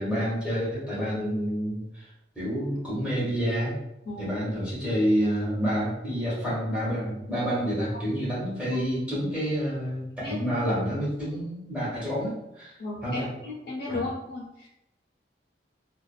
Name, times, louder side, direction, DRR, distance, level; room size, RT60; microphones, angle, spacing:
voice 1, 0.0-2.0 2.3-3.8 4.2-12.8 13.0-13.3 13.9-14.0, equal, 5° right, -8 dB, 1.1 m, -28 dB
voice 2, 12.8-14.4, left 2 dB, 65° left, -4 dB, 0.8 m, -34 dB
2.5 x 2.4 x 2.4 m, 0.87 s
head